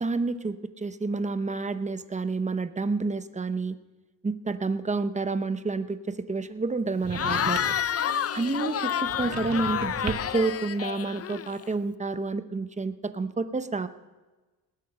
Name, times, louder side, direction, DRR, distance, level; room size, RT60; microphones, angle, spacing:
voice 1, 0.0-3.8 4.2-7.6 8.3-13.9, right 3 dB, 15° right, 11 dB, 0.8 m, -29 dB
sound 1, 7.0-7.9 9.0-10.5, right 6 dB, 40° right, 1.1 m, -37 dB
Cheering / Crowd, 7.1-11.7, left 9 dB, 35° left, 0.5 m, -29 dB
19.5 x 9.1 x 5.4 m, 1.2 s
cardioid pair, 100°, 43 cm